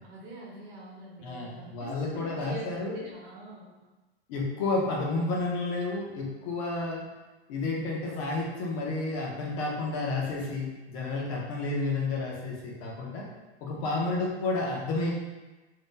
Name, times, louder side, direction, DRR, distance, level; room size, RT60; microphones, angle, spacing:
voice 1, 0.0-3.7 4.7-4.8 13.8-13.9, right 3 dB, 50° right, -4 dB, 1.1 m, -45 dB
voice 2, 1.2-3.0 4.3-7.0 7.5-13.2 13.6-15.1, left 3 dB, 30° left, -3 dB, 0.6 m, -31 dB
2.7 x 2.2 x 3.6 m, 1.1 s
hypercardioid pair, 155°, 33 cm